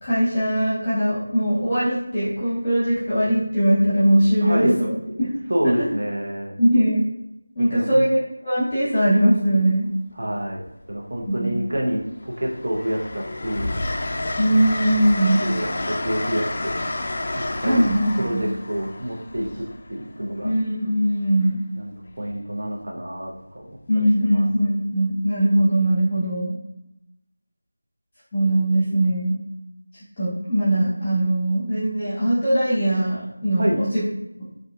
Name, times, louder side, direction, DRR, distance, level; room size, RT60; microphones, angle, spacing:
voice 1, 0.0-4.9 5.2-5.3 5.6-5.9 6.6-7.0 7.5-8.2 8.4-9.9 11.4-11.5 14.4-15.4 17.6-18.4 20.4-21.6 23.9-26.6 28.3-29.4 30.2-34.0, right 1 dB, 15° left, -11 dB, 0.9 m, -20 dB
voice 2, 4.4-4.7 5.5-6.5 7.7-8.1 10.2-10.6 10.9-13.8 15.4-16.8 17.6-17.9 18.1-20.5 21.7-21.9 22.2-23.8 24.2-24.5 33.6-33.8, equal, 45° right, -1 dB, 0.7 m, -27 dB
Train, 9.3-9.4 10.6-11.3 11.7-20.5 22.1-22.3, left 2 dB, 35° left, 0.3 m, -30 dB
6.0 x 2.6 x 2.2 m, 0.87 s
figure-of-eight pair, 170°, 0 cm